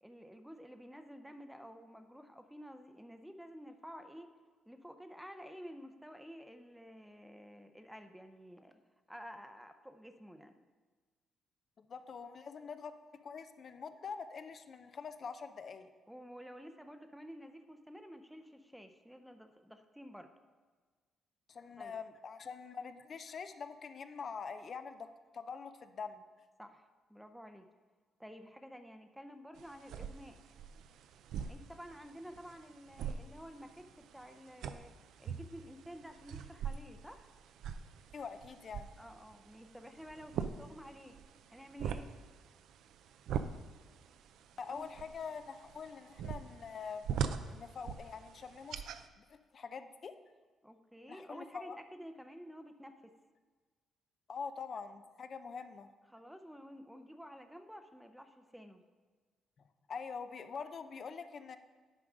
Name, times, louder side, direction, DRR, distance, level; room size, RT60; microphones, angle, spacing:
voice 1, 0.0-4.3 4.7-8.8 9.1-10.5 16.1-20.3 21.8-22.0 26.6-27.7 28.2-30.4 31.5-37.3 39.0-41.2 41.5-42.1 44.7-44.9 50.6-53.1 56.1-58.8, equal, ahead, 8 dB, 0.6 m, -51 dB
voice 2, 11.8-12.9 13.2-15.9 21.5-26.2 38.1-38.9 44.6-47.0 47.5-48.8 49.2-50.1 51.1-51.8 54.3-55.9 59.9-61.6, left 5 dB, 50° left, 10 dB, 0.5 m, -45 dB
sound 1, 29.6-49.1, right 7 dB, 80° right, 0.4 m, -43 dB
9.2 x 5.2 x 4.9 m, 1.4 s
cardioid pair, 90°, 0 cm